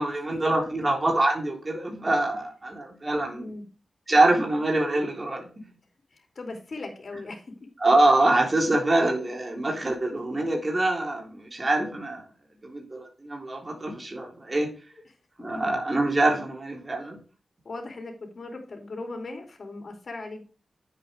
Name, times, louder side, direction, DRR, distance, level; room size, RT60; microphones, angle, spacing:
voice 1, 0.0-3.5 4.1-5.6 7.8-12.2 12.6-14.7 15.4-17.2, right 2 dB, 35° right, 0 dB, 3.4 m, -24 dB
voice 2, 6.1-7.4 17.6-20.4, left 2 dB, 60° left, 1 dB, 2.9 m, -38 dB
9.8 x 8.0 x 3.4 m, 0.36 s
wide cardioid pair, 90°, 0 cm